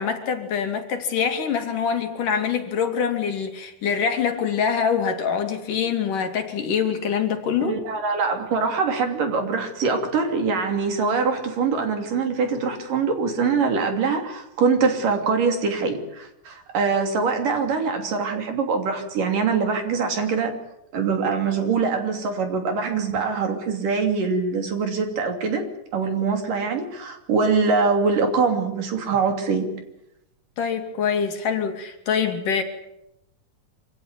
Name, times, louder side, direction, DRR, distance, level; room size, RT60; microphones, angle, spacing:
voice 1, 0.0-7.8 30.6-32.6, left 7 dB, 65° left, 5 dB, 4.1 m, -24 dB
voice 2, 7.6-20.5 20.9-25.6 25.9-29.7, right 5 dB, 65° right, 5 dB, 4.5 m, -23 dB
26.5 x 17.0 x 9.6 m, 0.84 s
omnidirectional pair, 4.2 m